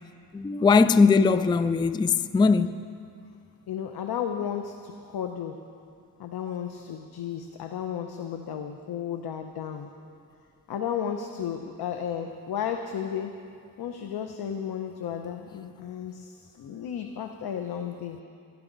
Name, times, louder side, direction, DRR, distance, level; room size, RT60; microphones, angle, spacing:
voice 1, 0.3-2.8, left 4 dB, 15° left, 0.3 m, -20 dB
voice 2, 3.7-5.6 6.2-9.9 10.7-13.4 13.8-18.2, left 8 dB, 90° left, 0.9 m, -33 dB
26.0 x 12.0 x 4.0 m
cardioid pair, 90°, 36 cm